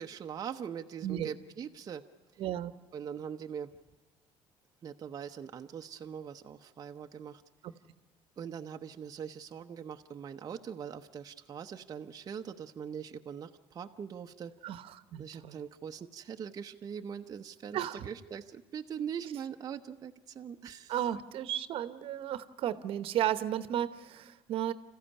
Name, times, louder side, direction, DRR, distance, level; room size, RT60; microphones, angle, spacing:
voice 1, 0.0-2.0 2.3-2.4 2.9-3.7 4.8-7.4 8.4-14.5 15.2-21.0, right 7 dB, 35° right, 4 dB, 0.8 m, -42 dB
voice 2, 2.4-2.7 7.6-7.7 14.6-15.6 17.7-18.1 20.9-24.7, right 11 dB, 65° right, 13 dB, 1.0 m, -34 dB
27.0 x 14.5 x 9.9 m, 1.2 s
cardioid pair, 125°, 10 cm